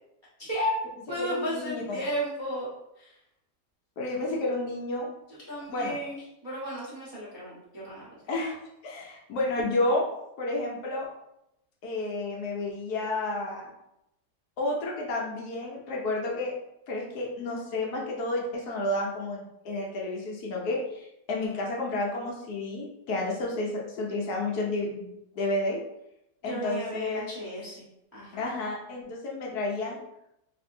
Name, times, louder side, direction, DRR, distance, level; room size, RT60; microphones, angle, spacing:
voice 1, 0.4-0.7 1.1-2.7 3.0-3.1 5.3-8.1 26.4-27.8 28.1-28.4, equal, 20° right, -9 dB, 0.6 m, -34 dB
voice 2, 1.2-1.8 4.0-5.1 5.7-6.0 8.3-10.1 10.4-11.1 11.8-13.7 14.6-16.5 16.9-25.8 26.4-27.3 28.3-30.0, left 2 dB, 70° left, -2 dB, 1.1 m, -31 dB
3.5 x 2.6 x 2.5 m, 0.84 s
omnidirectional pair, 1.9 m